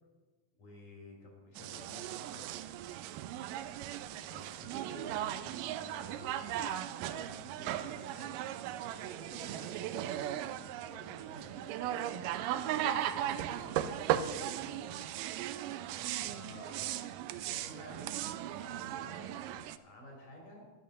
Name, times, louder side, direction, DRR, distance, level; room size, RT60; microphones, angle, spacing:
voice 1, 0.6-2.6 4.3-6.6 7.0-8.5 9.0-10.4 10.9-14.9 15.3-15.6 16.2-17.0 17.5-20.7, left 1 dB, 60° left, -1 dB, 5.3 m, -52 dB
sound 1, 1.6-19.8, right 11 dB, 80° right, 2.0 m, -37 dB
12.5 x 10.5 x 6.5 m, 1.3 s
omnidirectional pair, 4.2 m